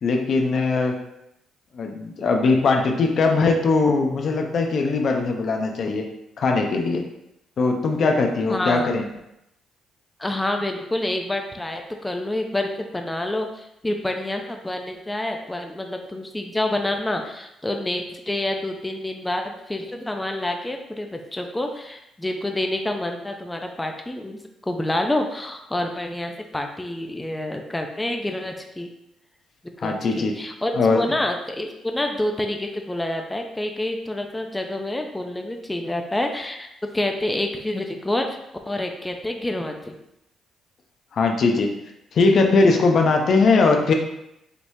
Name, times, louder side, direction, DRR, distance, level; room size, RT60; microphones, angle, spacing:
voice 1, 0.0-1.0 1.7-6.1 6.4-7.1 7.6-9.1 29.8-30.4 30.7-31.0 41.1-41.8 42.1-43.9, left 3 dB, 55° left, 3 dB, 0.7 m, -20 dB
voice 2, 8.5-8.9 10.2-24.4 24.7-28.9 29.8-36.7 36.9-38.4 38.7-39.9, left 1 dB, 10° left, 3 dB, 0.6 m, -28 dB
5.1 x 3.0 x 2.7 m, 0.82 s
cardioid pair, 90°, 0 cm